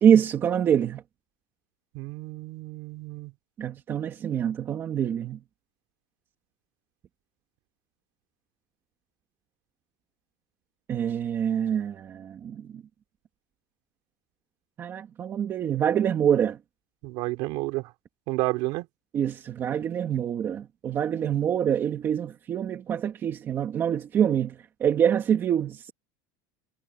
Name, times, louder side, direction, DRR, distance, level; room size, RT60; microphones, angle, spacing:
voice 1, 0.0-1.0 3.6-5.4 10.9-12.8 14.8-16.6 19.1-25.9, right 9 dB, 20° right, 2.4 m, -25 dB
voice 2, 1.9-3.3 17.0-17.9 18.3-18.9, right 22 dB, 45° right, 5.0 m, -31 dB
cardioid pair, 180°, 10 cm